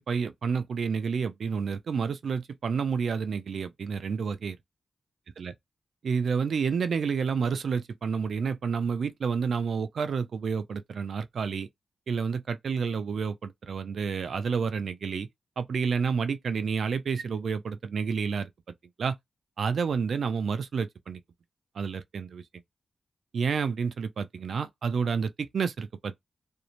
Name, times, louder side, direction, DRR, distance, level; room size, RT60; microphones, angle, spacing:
voice 1, 0.1-4.6 5.4-5.5 6.0-11.7 12.1-15.3 15.6-18.5 19.0-19.2 19.6-21.2 21.8-22.4 23.3-26.2, right 6 dB, 75° right, 0.3 m, -29 dB
2.5 x 2.0 x 2.8 m
wide cardioid pair, 120°, 0 cm